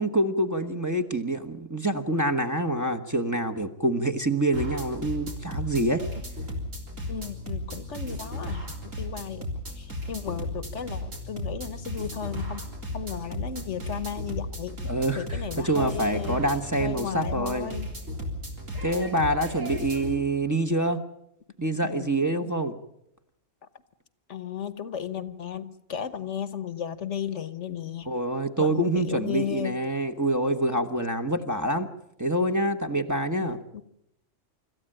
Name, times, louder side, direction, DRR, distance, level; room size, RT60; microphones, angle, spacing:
voice 1, 0.0-6.0 14.8-17.7 18.8-21.0 21.6-22.8 28.1-31.9 32.2-33.6, right 1 dB, 15° right, 4 dB, 1.2 m, -26 dB
sound 1, 4.5-20.1, left 1 dB, 80° right, 4.1 m, -35 dB
voice 2, 7.1-9.5 9.8-12.7 12.9-14.8 15.2-16.5 16.8-17.9 21.8-22.5 24.3-28.1 28.6-29.8 33.4-33.8, left 8 dB, 65° left, 14 dB, 1.3 m, -35 dB
26.0 x 14.0 x 9.0 m, 0.79 s
omnidirectional pair, 1.3 m